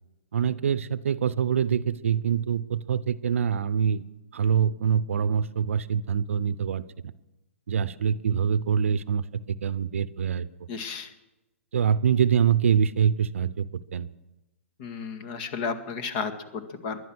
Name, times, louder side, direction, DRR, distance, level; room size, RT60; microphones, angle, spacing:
voice 1, 0.3-4.0 4.3-6.8 7.7-10.5 11.7-13.6 13.9-14.1, right 7 dB, 70° right, 17 dB, 0.7 m, -25 dB
voice 2, 10.7-11.1 14.8-17.0, left 5 dB, 50° left, 9 dB, 1.9 m, -33 dB
20.0 x 11.5 x 6.2 m, 1.0 s
hypercardioid pair, 125°, 7 cm